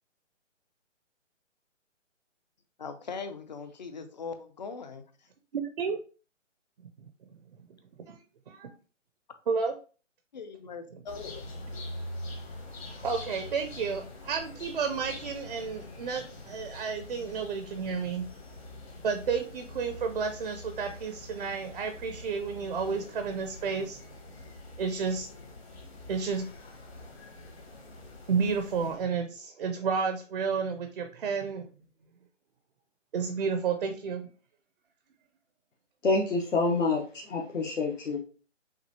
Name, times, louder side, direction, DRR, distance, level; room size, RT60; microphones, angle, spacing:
voice 1, 2.8-5.0 10.3-11.4, left 5 dB, 35° left, 8 dB, 0.5 m, -40 dB
voice 2, 5.5-6.0 8.1-8.2 8.5-8.7 9.5-9.7 13.0-18.2 19.0-24.0 24.8-25.3 26.1-26.5 28.3-31.7 33.1-34.3, right 5 dB, 45° right, 6 dB, 0.5 m, -31 dB
sound 1, 11.1-29.1, left 1 dB, 55° left, 1.5 m, -45 dB
voice 3, 36.0-38.2, left 3 dB, 75° left, -3 dB, 1.1 m, -27 dB
5.9 x 2.5 x 2.7 m, 0.38 s
figure-of-eight pair, 150°, 38 cm